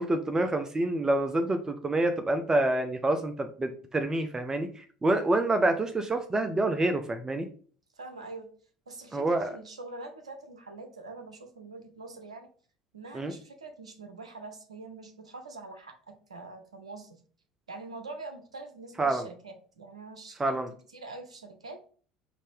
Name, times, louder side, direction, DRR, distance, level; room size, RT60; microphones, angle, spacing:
voice 1, 0.0-7.5 9.1-9.5 13.1-13.3 19.0-19.3 20.4-20.7, right 2 dB, 20° right, 7 dB, 0.5 m, -27 dB
voice 2, 8.0-8.5 8.9-12.5 12.9-17.2 17.7-20.6 20.9-21.8, right 3 dB, 80° right, 5 dB, 0.6 m, -44 dB
4.9 x 2.7 x 3.5 m, 0.43 s
figure-of-eight pair, 65°, 3 cm